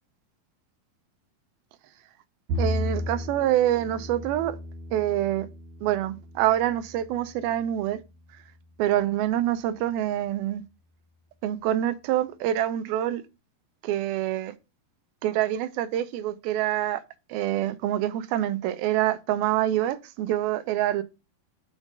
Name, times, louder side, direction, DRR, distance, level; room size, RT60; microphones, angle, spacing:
Bowed string instrument, 2.5-8.8, left 1 dB, 65° right, 2.9 m, -35 dB
voice 1, 2.6-4.6 4.9-5.5 5.8-8.0 8.8-10.6 11.4-13.2 13.8-14.5 15.2-17.0 17.3-21.0, right 12 dB, 80° right, 2.5 m, -26 dB
6.2 x 5.5 x 5.2 m
omnidirectional pair, 4.4 m